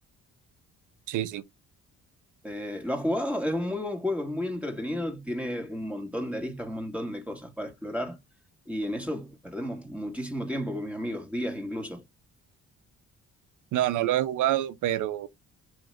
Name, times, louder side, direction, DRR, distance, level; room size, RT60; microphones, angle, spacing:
voice 1, 1.1-1.4 13.7-15.3, right 13 dB, 85° right, 0.8 m, -26 dB
voice 2, 2.4-8.2 8.7-12.0, left 1 dB, 5° right, 2.0 m, -32 dB
5.5 x 5.0 x 3.6 m
cardioid pair, 90°, 30 cm